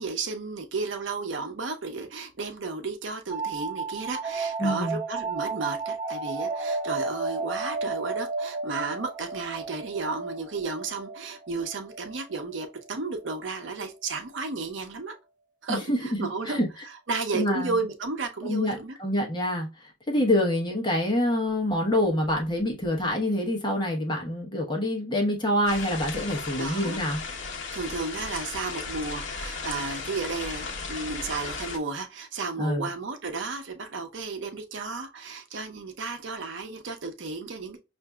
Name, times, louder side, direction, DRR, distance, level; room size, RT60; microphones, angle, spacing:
voice 1, 0.0-15.1 15.6-19.0 20.2-20.3 26.6-27.0 27.7-37.8, right 4 dB, 80° right, 0.7 m, -33 dB
sound 1, 3.3-12.7, right 4 dB, 40° right, 0.8 m, -33 dB
voice 2, 4.6-5.0 15.7-16.0 16.5-16.7 17.3-17.8 18.4-19.7 20.1-27.2 32.6-32.9, left 1 dB, 25° left, 1.0 m, -26 dB
sound 2, 25.7-31.8, left 4 dB, 75° left, 0.9 m, -36 dB
5.7 x 2.6 x 2.2 m
head